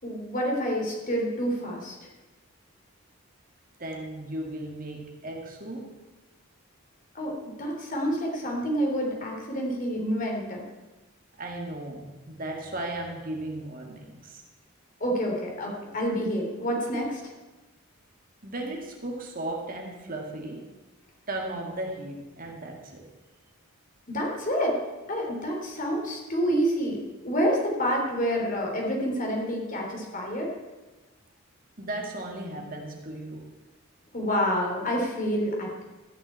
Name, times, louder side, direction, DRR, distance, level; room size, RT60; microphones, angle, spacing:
voice 1, 0.0-2.0 7.2-10.6 15.0-17.3 24.1-24.8 25.1-30.5 34.1-35.8, equal, 35° left, 0 dB, 3.5 m, -28 dB
voice 2, 3.8-5.9 11.4-14.4 18.4-20.7 21.3-23.1 31.8-33.5, right 1 dB, 40° right, 1 dB, 2.0 m, -36 dB
14.5 x 7.2 x 8.6 m, 1.1 s
head